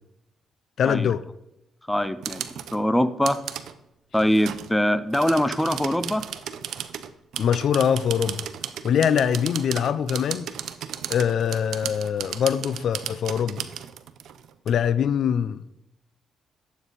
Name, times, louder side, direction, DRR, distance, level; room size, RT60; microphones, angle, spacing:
voice 1, 0.8-1.2 7.4-8.5 8.8-10.5 11.1-13.6 14.7-15.6, left 8 dB, 65° left, 0.4 m, -23 dB
voice 2, 1.9-2.4 2.7-3.4 4.1-6.2, equal, 5° left, 0.6 m, -23 dB
sound 1, 2.0-2.8 3.2-3.7 4.2-4.7 5.1-14.7, right 9 dB, 75° right, 0.7 m, -35 dB
12.0 x 8.1 x 4.1 m
cardioid pair, 100°, 0 cm